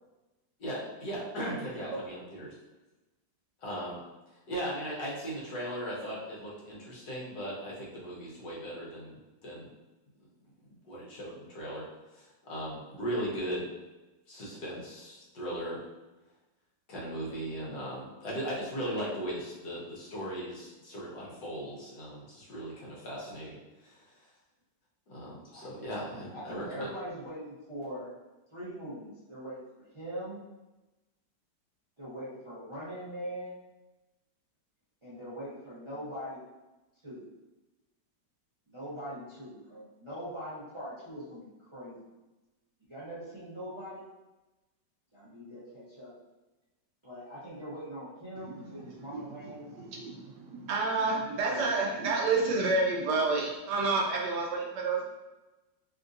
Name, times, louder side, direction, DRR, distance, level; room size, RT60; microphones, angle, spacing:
voice 1, 0.6-2.5 3.6-4.0 4.5-9.7 10.8-11.9 12.1-13.7 14.3-15.8 16.9-24.0 25.1-26.9, equal, 65° left, -6 dB, 1.4 m, -38 dB
voice 2, 1.8-2.1 25.5-28.1 28.5-30.4 32.0-33.5 35.0-36.5 37.0-37.2 38.7-42.0 42.9-44.1 45.1-46.1 47.0-49.7 51.4-51.7, equal, 35° right, -11 dB, 0.4 m, -42 dB
voice 3, 48.4-55.0, right 3 dB, 75° right, -1 dB, 1.1 m, -30 dB
3.5 x 2.6 x 2.4 m, 1.1 s
omnidirectional pair, 2.0 m